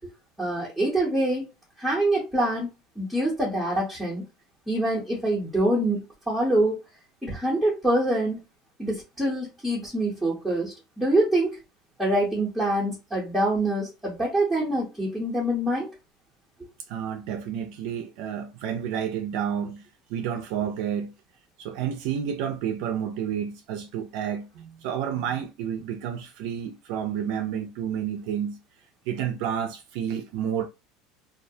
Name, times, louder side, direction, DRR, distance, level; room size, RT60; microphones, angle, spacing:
voice 1, 0.4-1.4 1.8-2.7 3.0-4.2 4.7-6.8 7.2-8.4 8.8-11.6 12.0-15.9, right 1 dB, ahead, 0.8 m, -25 dB
voice 2, 16.9-19.8 20.1-21.1 21.6-28.6 29.1-30.6, right 9 dB, 65° right, 0.4 m, -30 dB
2.3 x 2.0 x 2.6 m
supercardioid pair, 135°, 0 cm